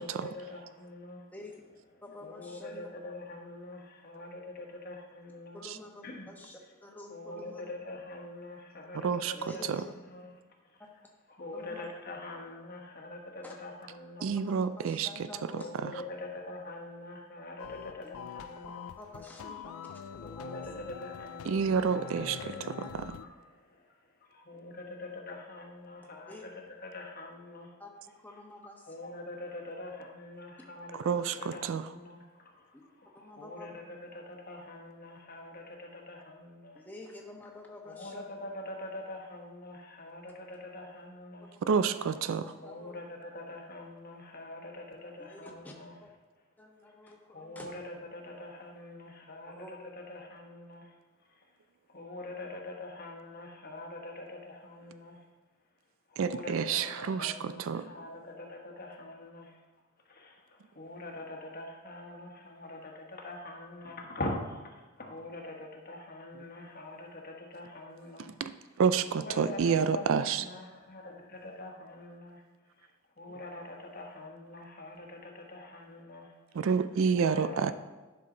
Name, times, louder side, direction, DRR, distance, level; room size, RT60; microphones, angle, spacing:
voice 1, 0.0-1.2 2.2-5.6 6.0-6.3 7.1-9.6 10.1-10.2 11.4-14.4 15.5-18.9 19.8-19.9 20.2-23.8 24.3-26.4 26.9-27.7 28.9-31.0 31.3-32.6 33.0-33.8 34.1-36.8 37.9-41.5 42.6-45.9 47.3-47.8 48.1-49.6 50.1-50.9 51.9-55.2 56.1-59.6 60.1-68.3 69.1-72.4 73.2-76.3 77.1-77.7, left 2 dB, 45° left, 1 dB, 1.3 m, -44 dB
voice 2, 1.3-1.6 2.0-2.9 5.5-7.7 9.3-9.9 11.5-11.9 13.4-13.5 14.5-15.7 19.0-19.7 20.1-20.6 22.2-22.3 26.3-26.4 27.8-27.9 28.2-29.0 33.1-33.7 36.7-38.2 41.8-42.9 45.2-45.7 46.0-46.1 46.6-47.8 49.5-49.7, left 2 dB, 10° left, 0 dB, 1.1 m, -49 dB
voice 3, 8.9-9.3 9.7-9.8 14.2-15.1 15.8-15.9 21.5-22.5 22.9-23.1 31.1-31.9 41.6-42.4 56.2-57.9 68.2-70.4 76.5-77.7, right 6 dB, 65° right, 13 dB, 0.3 m, -29 dB
sound 1, 17.6-23.2, left 8 dB, 70° left, 0.3 m, -45 dB
11.0 x 5.7 x 3.9 m, 1.2 s
head